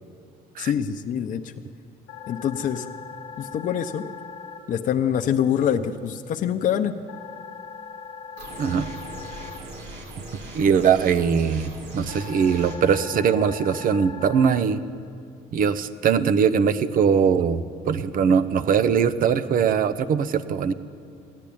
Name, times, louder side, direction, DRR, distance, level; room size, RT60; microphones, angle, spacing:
voice 1, 0.6-1.5 2.3-2.9 3.4-4.0 4.7-6.9, left 9 dB, 50° left, 5 dB, 0.7 m, -25 dB
sound 1, 2.1-4.6 7.1-9.6 12.1-14.6, left 6 dB, 85° left, 1.1 m, -40 dB
sound 2, 8.4-12.8, right 1 dB, 80° right, 2.6 m, -40 dB
voice 2, 10.5-14.8 15.5-20.7, right 7 dB, 55° right, 14 dB, 0.8 m, -21 dB
15.0 x 10.5 x 8.6 m, 2.4 s
cardioid pair, 110°, 17 cm